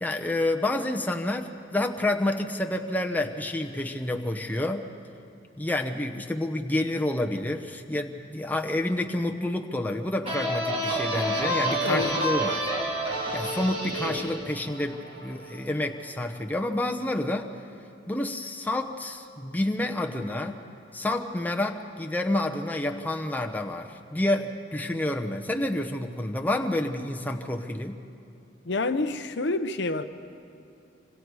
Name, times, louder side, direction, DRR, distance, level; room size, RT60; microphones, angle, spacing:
voice 1, 0.0-4.8 5.6-12.7 13.3-17.5 18.1-20.6 20.9-28.0, left 1 dB, 10° left, 0.9 m, -29 dB
sound 1, 10.2-15.7, right 1 dB, 30° right, 3.8 m, -29 dB
voice 2, 11.8-12.2 28.7-30.0, left 2 dB, 60° left, 0.8 m, -28 dB
26.5 x 25.5 x 4.8 m
head